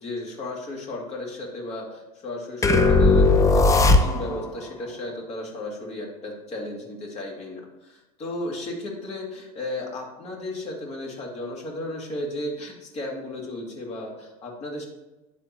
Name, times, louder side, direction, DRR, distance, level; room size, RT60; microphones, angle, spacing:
voice 1, 0.0-14.8, left 1 dB, 35° left, -1 dB, 2.3 m, -34 dB
sound 1, 2.6-4.5, left 3 dB, 15° left, 0.6 m, -17 dB
9.9 x 3.6 x 4.3 m, 1.1 s
hypercardioid pair, 105°, 19 cm